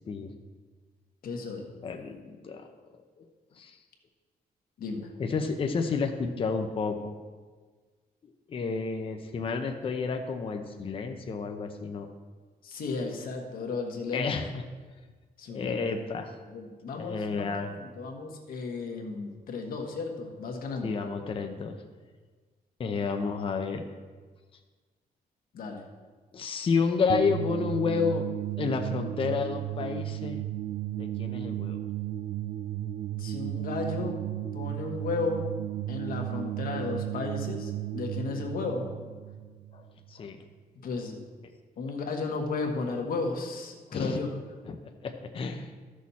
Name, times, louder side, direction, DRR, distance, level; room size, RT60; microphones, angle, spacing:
voice 1, 0.1-0.4 1.8-2.7 3.2-3.3 3.5-3.8 5.2-7.1 8.2-12.1 14.1-14.6 15.5-16.3 16.9-17.8 20.8-21.8 22.8-23.8 26.3-28.2 28.6-30.4 31.0-31.8 39.7-40.4 43.9-44.2 44.7-45.7, left 5 dB, 35° left, 5 dB, 0.7 m, -30 dB
voice 2, 1.2-1.7 4.8-5.1 12.6-14.3 15.4-15.9 16.5-20.9 25.5-25.8 33.2-34.2 34.5-35.5 35.9-38.9 40.8-41.2 41.8-44.4, left 4 dB, 65° left, 2 dB, 1.5 m, -34 dB
sound 1, 27.1-40.2, right 13 dB, 50° right, 0.5 m, -34 dB
14.0 x 6.4 x 4.2 m, 1.4 s
wide cardioid pair, 175°, 16 cm